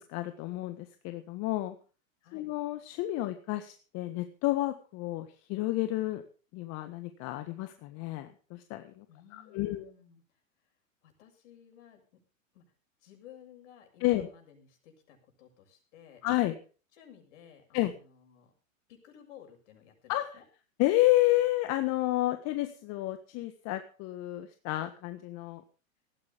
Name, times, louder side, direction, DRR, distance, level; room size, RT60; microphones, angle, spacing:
voice 1, 0.1-1.7 2.3-6.2 6.5-9.0 9.3-9.9 14.0-14.3 16.2-16.5 17.7-17.9 20.1-20.4 20.8-25.6, left 16 dB, 40° left, 9 dB, 1.6 m, -30 dB
voice 2, 9.1-10.2 11.0-12.0 12.5-12.7 13.0-16.6 16.9-18.5 18.9-20.4, left 9 dB, 60° left, 4 dB, 7.0 m, -56 dB
19.0 x 15.0 x 3.7 m, 0.36 s
hypercardioid pair, 110°, 40 cm